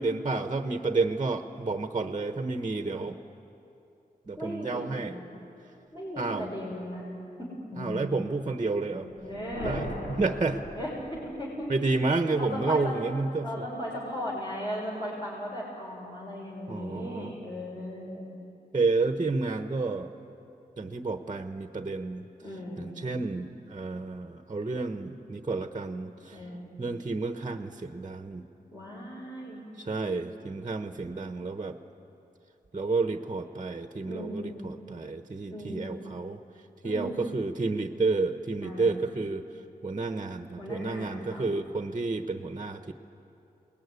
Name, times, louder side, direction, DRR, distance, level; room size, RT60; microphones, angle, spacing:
voice 1, 0.0-3.2 4.3-5.2 6.2-6.5 7.8-9.1 9.6-10.6 11.7-13.6 16.7-17.3 18.7-20.1 20.8-22.2 22.8-26.4 26.8-28.5 29.8-31.8 32.7-36.4 36.8-39.4 39.8-42.9, right 3 dB, 30° right, 7 dB, 1.1 m, -30 dB
voice 2, 4.4-5.2 5.9-7.0 7.4-8.2 8.9-9.8 10.8-11.7 12.3-13.0 13.4-18.3 22.4-22.9 26.3-26.7 28.7-29.6 34.0-34.6 35.5-35.9 36.8-37.2 38.6-39.0 40.6-41.5, equal, 30° left, -6 dB, 6.0 m, -37 dB
sound 1, 9.1-11.7, left 1 dB, 85° left, 3.1 m, -39 dB
29.0 x 20.5 x 9.7 m, 2.9 s
wide cardioid pair, 115°, 16 cm